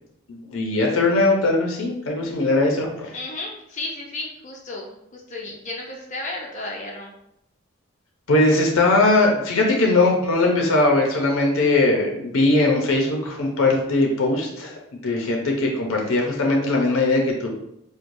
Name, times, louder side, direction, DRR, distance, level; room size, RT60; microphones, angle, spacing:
voice 1, 0.3-3.1 8.3-17.5, left 2 dB, 75° left, 0 dB, 0.6 m, -20 dB
voice 2, 3.1-7.1, left 2 dB, 35° left, -1 dB, 0.5 m, -33 dB
4.6 x 2.2 x 2.6 m, 0.78 s
head